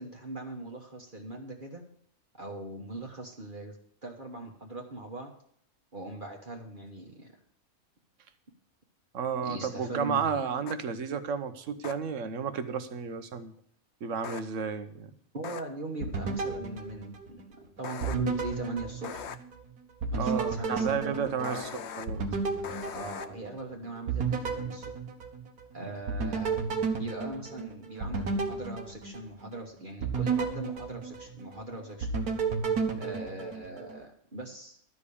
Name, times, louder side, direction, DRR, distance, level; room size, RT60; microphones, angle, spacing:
voice 1, 0.0-1.8 2.3-5.3 5.9-7.3 9.4-10.5 15.3-17.5 17.8-19.3 20.1-21.7 22.9-24.9 25.7-26.6 27.0-32.1 33.0-34.8, right 2 dB, 35° right, 1 dB, 1.4 m, -40 dB
voice 2, 9.1-13.5 14.0-15.1 20.2-21.7 22.0-22.3 25.8-25.9, right 6 dB, 60° right, 10 dB, 1.2 m, -32 dB
sound 1, 10.7-10.8 11.8-11.9 14.2-14.4 15.4-15.6 17.8-18.1 19.0-19.4 21.4-22.1 22.6-23.3, left 8 dB, 60° left, 0.8 m, -39 dB
sound 2, 16.0-17.6 18.0-19.6 20.0-23.7 24.1-25.7 26.1-29.5 30.0-31.6 32.0-34.0, right 5 dB, 90° right, 1.9 m, -32 dB
12.5 x 5.2 x 8.5 m, 0.65 s
omnidirectional pair, 1.5 m